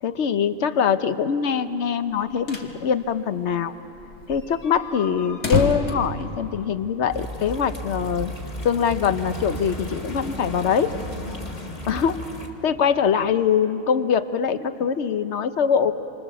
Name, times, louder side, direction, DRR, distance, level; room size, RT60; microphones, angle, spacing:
voice 1, 0.0-3.7 4.3-8.3 8.6-10.9 11.9-12.2 12.6-15.9, left 7 dB, 55° left, 11 dB, 1.1 m, -23 dB
sound 1, 2.1-2.7 3.1-3.2 3.4-3.5 3.9-7.0, left 4 dB, 80° left, 2.2 m, -28 dB
sound 2, 7.1-12.5, left 1 dB, 30° left, 2.1 m, -34 dB
27.0 x 25.0 x 7.0 m, 2.9 s
omnidirectional pair, 1.5 m